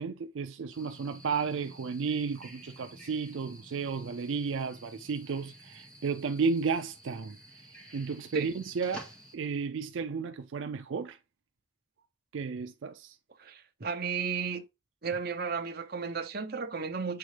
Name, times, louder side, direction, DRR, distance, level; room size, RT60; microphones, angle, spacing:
voice 1, 0.0-11.2 12.3-13.2, right 5 dB, 75° right, 0.4 m, -33 dB
sound 1, 0.7-9.4, equal, 5° left, 1.8 m, -51 dB
voice 2, 13.4-14.7 15.0-17.2, right 5 dB, 50° right, 0.8 m, -34 dB
7.7 x 3.7 x 3.3 m
head